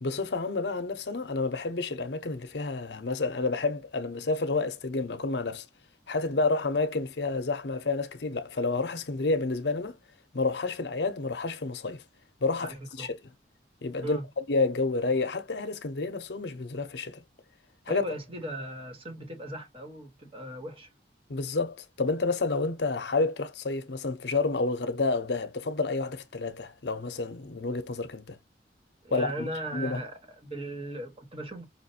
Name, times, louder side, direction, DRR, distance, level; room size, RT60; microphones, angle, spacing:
voice 1, 0.0-5.7 6.1-10.0 10.3-12.0 12.4-13.2 13.8-17.2 17.9-18.1 21.3-28.4 29.1-30.0, left 3 dB, 65° left, 0.7 m, -29 dB
voice 2, 12.6-13.1 14.0-14.2 17.9-20.9 29.0-31.7, right 1 dB, 35° right, 1.4 m, -38 dB
5.6 x 2.5 x 2.7 m
head